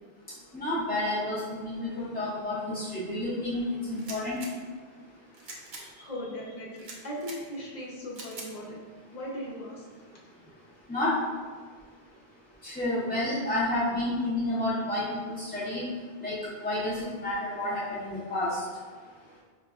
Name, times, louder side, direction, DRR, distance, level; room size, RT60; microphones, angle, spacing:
voice 1, 0.5-3.6 3.9-4.4 10.9-11.1 12.6-15.0 15.4-15.8 16.2-16.3 16.6-16.9 17.2-18.5, left 1 dB, 15° left, -10 dB, 0.3 m, -30 dB
sound 1, 3.9-4.5 5.3-5.8 6.8-7.4 8.1-8.5, right 2 dB, 55° right, 0.7 m, -43 dB
voice 2, 5.7-8.8 9.1-9.9 10.4-10.5, equal, 45° left, -5 dB, 0.8 m, -38 dB
4.9 x 2.2 x 2.3 m, 1.5 s
omnidirectional pair, 1.1 m